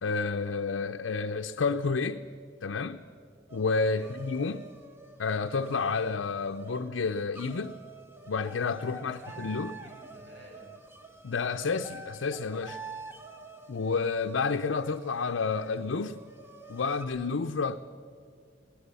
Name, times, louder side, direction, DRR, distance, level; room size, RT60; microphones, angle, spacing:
voice 1, 0.0-2.3 2.6-3.0 3.5-4.7 5.2-7.8 8.3-9.7 11.2-12.8 13.7-16.2 16.7-17.8, left 4 dB, 75° left, 0.6 m, -30 dB
sound 1, 3.5-17.0, right 2 dB, 10° right, 1.3 m, -47 dB
voice 2, 9.0-10.8, equal, 60° right, 7.3 m, -51 dB
22.5 x 16.5 x 6.9 m
head